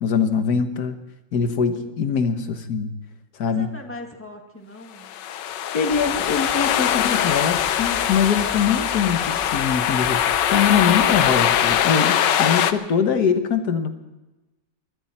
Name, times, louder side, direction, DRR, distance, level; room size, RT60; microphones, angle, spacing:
voice 1, 0.0-1.0 1.3-2.9 3.3-3.7 5.7-13.9, left 6 dB, 60° left, 8 dB, 1.7 m, -23 dB
voice 2, 3.5-5.1 6.1-6.2, left 1 dB, 5° left, 3 dB, 1.9 m, -41 dB
sound 1, 5.0-12.7, left 10 dB, 80° left, 1.4 m, -22 dB
sound 2, 5.9-11.8, equal, 15° right, 1.6 m, -41 dB
23.0 x 14.0 x 4.4 m, 1.1 s
omnidirectional pair, 1.9 m